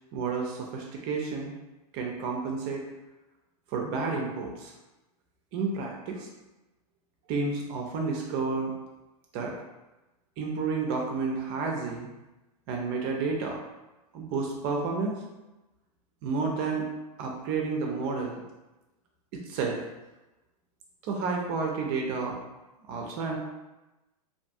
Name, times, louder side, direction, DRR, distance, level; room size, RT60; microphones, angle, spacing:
voice 1, 0.1-1.5 1.9-2.8 3.7-4.7 5.5-6.3 7.3-8.7 9.3-9.5 10.4-12.1 12.7-13.6 14.1-15.2 16.2-16.8 17.2-18.4 19.3-19.8 21.0-22.4 22.9-23.4, right 4 dB, 45° right, 0 dB, 0.4 m, -30 dB
2.5 x 2.3 x 2.6 m, 1.0 s
hypercardioid pair, 115°, 20 cm